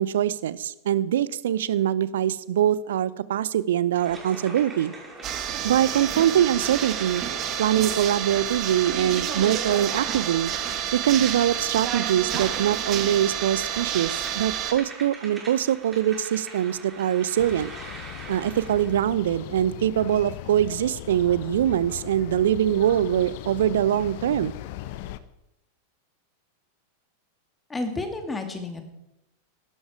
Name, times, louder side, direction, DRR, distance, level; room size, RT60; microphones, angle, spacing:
voice 1, 0.0-4.9 5.6-7.2 7.6-10.5 10.9-17.7 18.3-24.5, right 11 dB, 60° right, 19 dB, 0.6 m, -23 dB
sound 1, 3.9-19.0, right 3 dB, 15° right, 5.7 m, -43 dB
sound 2, 5.2-14.7, right 9 dB, 35° right, 1.5 m, -29 dB
sound 3, 17.4-25.2, left 14 dB, 50° left, 0.8 m, -38 dB
voice 2, 27.7-28.8, left 2 dB, 15° left, 6 dB, 2.2 m, -31 dB
15.5 x 12.0 x 4.7 m, 0.87 s
figure-of-eight pair, 90°, 0 cm